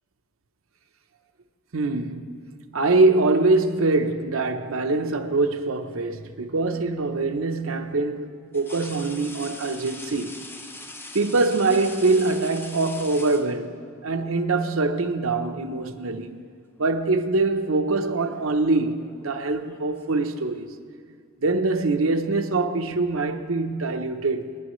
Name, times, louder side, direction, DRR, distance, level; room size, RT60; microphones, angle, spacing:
voice 1, 1.7-2.5 2.7-10.5 11.1-13.7 14.0-16.4 16.8-20.7 21.4-24.6, right 3 dB, 85° right, 0.8 m, -23 dB
sound 1, 4.2-5.1 6.8-7.0 8.5-14.0 15.2-15.4 15.8-16.6 16.8-17.2 18.1-20.7, left 2 dB, 10° left, 0.6 m, -43 dB
26.0 x 9.8 x 3.2 m
head